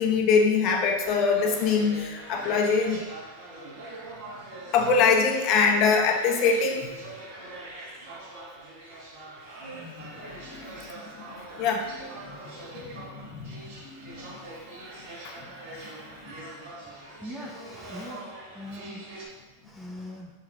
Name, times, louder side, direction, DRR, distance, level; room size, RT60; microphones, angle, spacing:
voice 1, 0.0-3.0 4.7-6.9 9.7-10.8 11.1-11.2 11.6-14.4 15.2-15.3 15.7-15.9, left 5 dB, 40° left, 2 dB, 0.6 m, -25 dB
sound 1, 1.0-19.3, right 2 dB, 55° right, 1.1 m, -43 dB
voice 2, 17.2-18.2 18.5-19.1 19.6-20.3, left 1 dB, 5° right, -1 dB, 0.5 m, -40 dB
6.4 x 3.3 x 2.3 m, 1.2 s
supercardioid pair, 150°, 0 cm